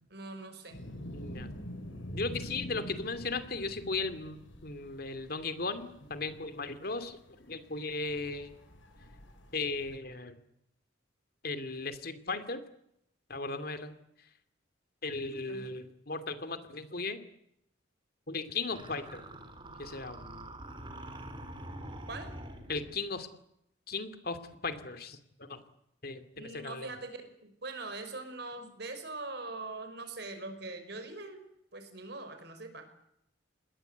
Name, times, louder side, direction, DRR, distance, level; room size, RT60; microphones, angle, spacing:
voice 1, 0.1-0.8 15.5-15.6 22.1-22.4 26.4-32.9, right 3 dB, 60° right, 8 dB, 5.7 m, -42 dB
sound 1, 0.7-10.0, equal, 90° left, 5.5 m, -46 dB
voice 2, 1.1-1.5 2.1-8.6 9.5-10.3 11.4-12.6 13.3-13.9 15.0-17.2 18.3-19.2 19.8-20.2 22.7-23.3 23.9-25.2 25.5-25.6 26.0-26.9, left 3 dB, 50° left, 10 dB, 2.7 m, -36 dB
sound 2, 18.7-23.0, right 1 dB, 25° right, 3.6 m, -45 dB
28.0 x 21.0 x 8.2 m, 0.76 s
head